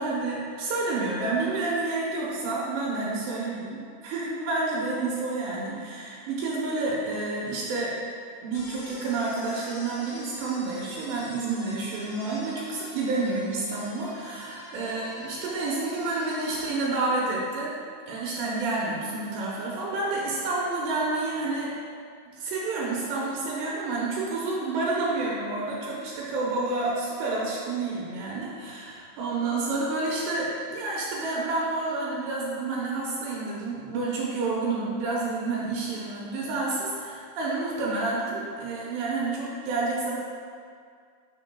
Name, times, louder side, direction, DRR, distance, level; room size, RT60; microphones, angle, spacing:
voice 1, 0.0-7.9 8.4-17.7 18.1-21.7 22.4-40.1, right 3 dB, 80° right, -5 dB, 3.0 m, -29 dB
sound 1, 8.5-16.6, left 2 dB, 70° left, 2.0 m, -45 dB
11.5 x 5.8 x 2.2 m, 2.2 s
omnidirectional pair, 4.8 m